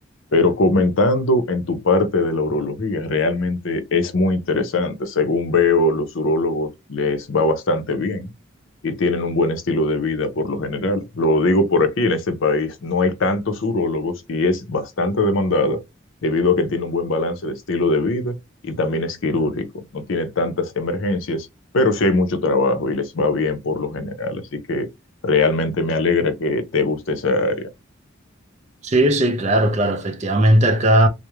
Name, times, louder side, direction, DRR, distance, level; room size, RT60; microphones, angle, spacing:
voice 1, 0.3-8.3 8.8-15.8 16.2-18.3 18.6-21.5 21.7-24.9 25.2-27.7, left 2 dB, 70° left, 0.6 m, -21 dB
voice 2, 28.8-31.1, right 1 dB, 35° right, 0.4 m, -17 dB
2.3 x 2.0 x 3.0 m
head